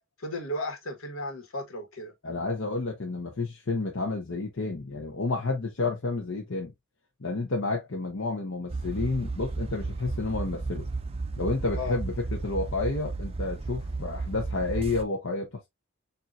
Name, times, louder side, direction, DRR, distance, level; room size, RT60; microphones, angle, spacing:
voice 1, 0.2-2.1 11.7-12.0, left 1 dB, 90° left, 1.6 m, -34 dB
voice 2, 2.2-6.7 7.2-10.8 11.4-12.1 12.4-15.7, left 3 dB, 75° left, 1.0 m, -30 dB
sound 1, 8.7-15.0, right 3 dB, 30° right, 0.4 m, -34 dB
6.8 x 2.8 x 2.5 m
head